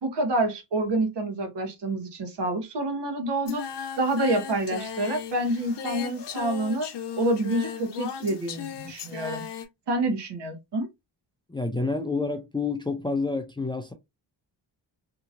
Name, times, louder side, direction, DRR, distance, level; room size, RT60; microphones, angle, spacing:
voice 1, 0.0-3.6 4.0-6.9 7.2-9.4 9.9-10.9, right 1 dB, 65° right, 1.1 m, -27 dB
Singing, 3.5-9.7, left 8 dB, 70° left, 0.7 m, -36 dB
voice 2, 11.5-13.9, left 3 dB, 10° left, 0.4 m, -28 dB
2.8 x 2.7 x 2.5 m
cardioid pair, 80°, 45 cm